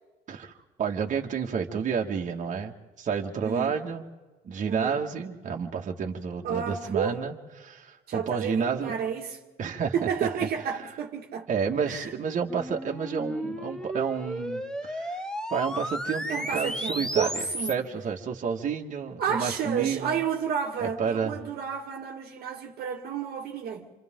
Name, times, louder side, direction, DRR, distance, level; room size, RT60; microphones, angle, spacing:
voice 1, 0.8-4.1 4.4-8.9 9.6-10.3 11.5-15.2 15.5-20.2 20.8-21.3, right 6 dB, 45° right, 2.2 m, -30 dB
voice 2, 3.4-3.8 4.7-5.1 6.4-7.2 8.1-9.4 9.9-11.5 11.9-12.1 16.3-17.9 19.2-23.9, right 7 dB, 65° right, 2.1 m, -31 dB
sound 1, 12.5-17.7, equal, 5° left, 1.3 m, -33 dB
29.0 x 26.5 x 3.9 m
cardioid pair, 110°, 17 cm